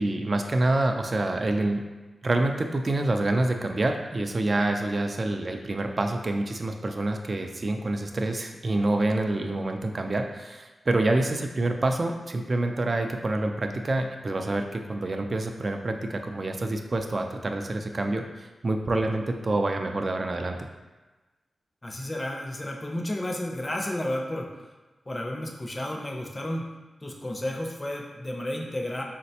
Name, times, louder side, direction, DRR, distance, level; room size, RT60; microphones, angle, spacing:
voice 1, 0.0-1.8 2.2-20.7, right 2 dB, 50° right, 4 dB, 0.3 m, -27 dB
voice 2, 21.8-24.5 25.1-26.7 27.0-29.0, left 1 dB, 30° left, 0 dB, 0.5 m, -32 dB
4.0 x 2.1 x 2.7 m, 1.2 s
cardioid pair, 60°, 0 cm